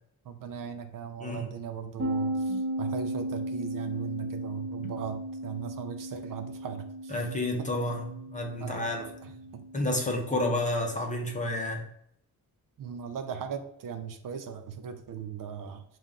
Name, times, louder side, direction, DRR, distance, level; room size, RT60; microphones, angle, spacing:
voice 1, 0.3-7.1 8.6-9.1 9.5-9.6 12.8-15.8, right 7 dB, 60° right, 8 dB, 0.5 m, -38 dB
voice 2, 1.2-1.5 2.5-2.6 7.1-9.1 9.7-11.9, left 1 dB, 20° left, 1 dB, 0.8 m, -30 dB
sound 1, 2.0-11.5, right 1 dB, 30° right, 1.0 m, -36 dB
5.6 x 2.6 x 3.5 m, 0.71 s
wide cardioid pair, 145°, 37 cm